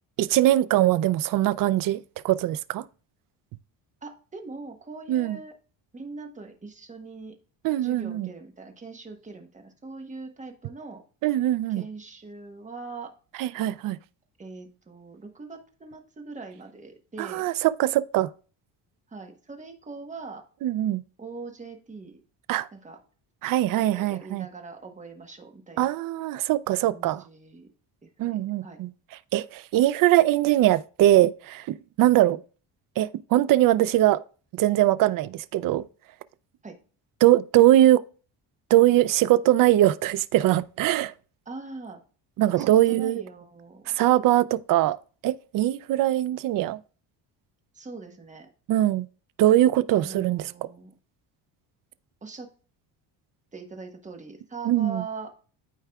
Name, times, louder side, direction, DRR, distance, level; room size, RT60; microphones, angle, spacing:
voice 1, 0.2-2.8 5.1-5.4 7.6-8.3 11.2-11.8 13.4-14.0 17.2-18.3 20.6-21.0 22.5-22.7 23.4-24.5 25.8-27.2 28.2-28.9 29.3-31.7 32.0-32.4 33.0-34.2 34.5-35.8 37.2-38.0 38.7-41.1 42.4-43.2 43.9-45.0 45.2-46.8 48.7-49.1 49.4-50.4 54.7-55.0, right 14 dB, 50° right, 0.4 m, -21 dB
voice 2, 4.0-5.5 5.9-7.4 7.8-11.0 11.7-13.1 14.4-17.5 19.1-20.4 21.2-22.2 22.7-23.0 23.8-25.9 26.8-27.7 28.0-28.8 36.6-36.8 41.4-42.0 42.6-44.0 47.7-48.5 49.9-50.9 52.2-52.5 53.5-55.3, right 3 dB, 15° right, 1.2 m, -41 dB
12.5 x 4.6 x 2.3 m
cardioid pair, 140°, 43 cm